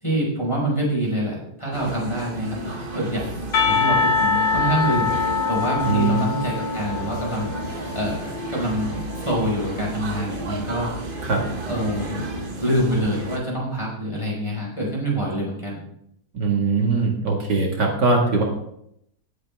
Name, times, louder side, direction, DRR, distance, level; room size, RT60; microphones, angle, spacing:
voice 1, 0.0-3.3 3.6-5.1 5.5-7.5 7.9-10.9 11.2-11.3 11.6-12.3 12.6-15.8, right 1 dB, 15° left, -4 dB, 5.1 m, -26 dB
sound 1, 1.7-13.4, right 2 dB, 30° right, 1.3 m, -32 dB
Percussion, 3.5-8.4, left 5 dB, 60° left, 2.0 m, -24 dB
voice 2, 5.9-6.3 11.2-11.4 16.3-18.4, right 4 dB, 65° right, 0 dB, 2.5 m, -21 dB
19.0 x 8.1 x 3.6 m, 0.76 s
omnidirectional pair, 2.0 m